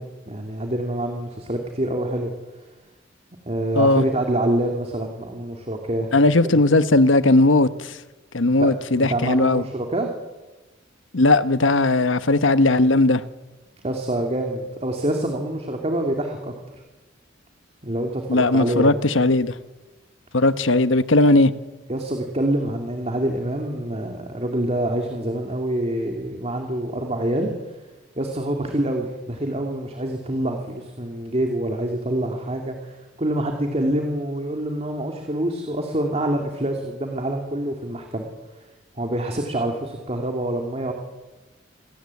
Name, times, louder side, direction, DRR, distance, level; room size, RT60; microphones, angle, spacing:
voice 1, 0.0-2.3 3.5-6.1 6.5-6.6 8.6-10.1 13.8-16.5 17.8-19.0 21.9-27.5 28.2-38.3 39.0-40.9, right 1 dB, 35° right, 2.7 m, -26 dB
voice 2, 6.1-7.9 8.3-9.6 11.1-13.2 18.3-19.5 20.3-21.5, left 2 dB, 80° left, 1.2 m, -17 dB
26.5 x 18.5 x 8.5 m
head